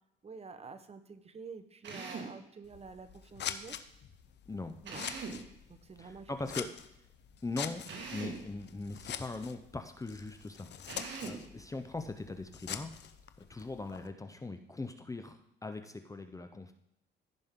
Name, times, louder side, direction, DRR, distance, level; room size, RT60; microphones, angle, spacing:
voice 1, 0.2-3.7 4.8-5.0 5.7-6.5, right 5 dB, 30° right, 10 dB, 1.0 m, -49 dB
Drill, 1.8-2.4 4.8-5.5 7.9-8.5 10.9-11.5, right 4 dB, 65° right, 1.8 m, -42 dB
Scissors, 2.6-14.1, left 9 dB, 60° left, 0.7 m, -45 dB
voice 2, 4.5-4.8 6.0-6.7 7.4-7.8 8.1-12.9 13.5-16.7, left 3 dB, 15° left, 7 dB, 0.7 m, -40 dB
15.0 x 5.3 x 3.7 m, 0.81 s
cardioid pair, 90°, 20 cm